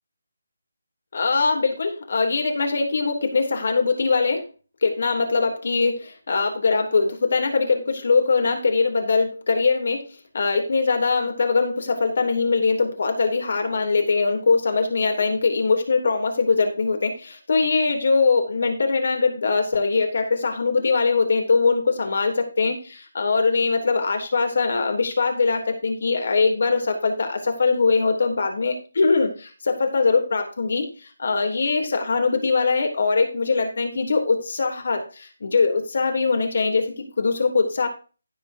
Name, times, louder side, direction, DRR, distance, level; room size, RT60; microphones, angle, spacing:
voice 1, 1.1-4.4 4.8-10.1 10.3-30.9 31.2-37.9, left 4 dB, 60° left, 4 dB, 3.2 m, -22 dB
16.0 x 5.9 x 2.8 m, 0.35 s
figure-of-eight pair, 160°, 0 cm